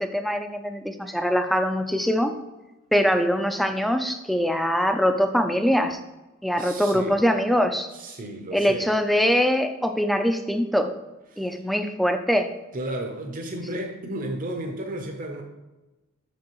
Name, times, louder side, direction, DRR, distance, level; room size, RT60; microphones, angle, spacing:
voice 1, 0.0-2.3 2.9-6.0 6.4-7.9 8.5-10.9 11.4-12.5, equal, ahead, 7 dB, 0.3 m, -23 dB
voice 2, 6.6-7.2 7.9-8.9 11.3-11.6 12.7-15.4, right 1 dB, 40° right, 3 dB, 0.6 m, -33 dB
6.0 x 5.4 x 2.9 m, 1.1 s
head